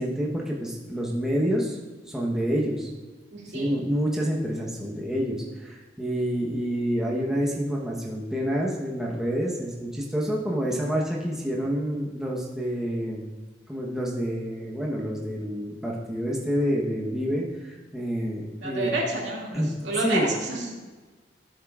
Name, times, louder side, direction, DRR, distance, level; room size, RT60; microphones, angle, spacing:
voice 1, 0.0-1.8 2.1-2.9 3.5-13.2 13.7-18.9 19.5-19.7 20.0-20.3, equal, 5° right, -3 dB, 1.0 m, -28 dB
voice 2, 3.3-3.7 18.6-20.8, right 2 dB, 75° right, -3 dB, 2.3 m, -29 dB
13.5 x 7.4 x 2.4 m, 1.3 s
head